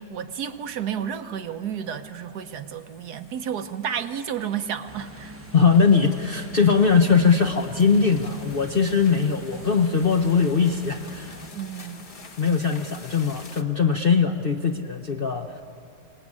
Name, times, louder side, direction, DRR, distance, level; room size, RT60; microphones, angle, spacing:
voice 1, 0.0-5.3 11.5-12.0, right 8 dB, 70° right, 9 dB, 1.4 m, -31 dB
sound 1, 1.6-13.6, left 3 dB, 30° left, 1.2 m, -48 dB
sound 2, 4.8-11.5, right 1 dB, 10° right, 0.6 m, -43 dB
voice 2, 5.5-11.4 12.4-15.6, left 5 dB, 50° left, 5 dB, 0.7 m, -21 dB
24.0 x 19.0 x 9.7 m, 2.5 s
omnidirectional pair, 1.9 m